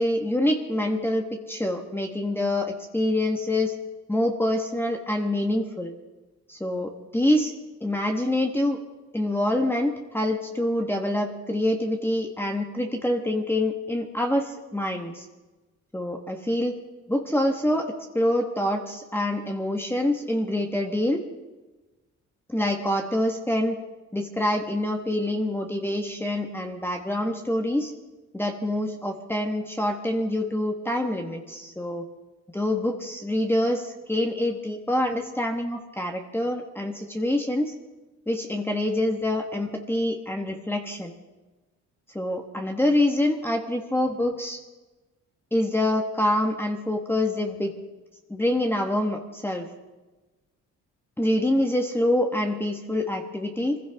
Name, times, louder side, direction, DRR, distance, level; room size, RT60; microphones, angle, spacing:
voice 1, 0.0-3.7 4.1-5.9 6.5-7.5 7.8-8.8 9.1-15.3 15.9-16.8 17.1-21.2 22.5-23.8 24.1-27.9 28.3-32.1 32.5-37.7 38.3-41.1 42.1-44.6 45.5-47.7 48.3-49.7 51.2-53.8, left 1 dB, 5° left, 2 dB, 1.5 m, -26 dB
23.0 x 15.5 x 3.6 m, 1.2 s
cardioid pair, 90°, 30 cm